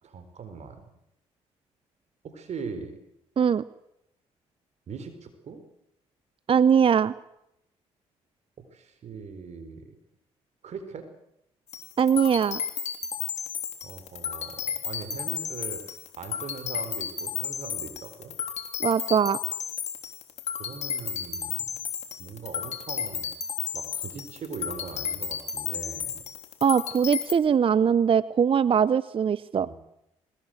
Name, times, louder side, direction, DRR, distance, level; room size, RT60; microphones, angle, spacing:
voice 1, 0.0-0.8 2.2-2.9 4.9-5.6 8.6-9.9 10.6-11.1 13.8-18.4 20.5-21.7 22.2-23.3 23.7-26.2 29.6-29.8, right 5 dB, 60° right, 9 dB, 4.4 m, -40 dB
voice 2, 6.5-7.1 12.0-12.6 18.8-19.4 26.6-29.7, right 7 dB, 45° right, 18 dB, 0.8 m, -21 dB
sound 1, 11.7-27.3, left 8 dB, 65° left, 3.5 m, -33 dB
21.5 x 19.5 x 7.9 m, 0.82 s
supercardioid pair, 65°, 13 cm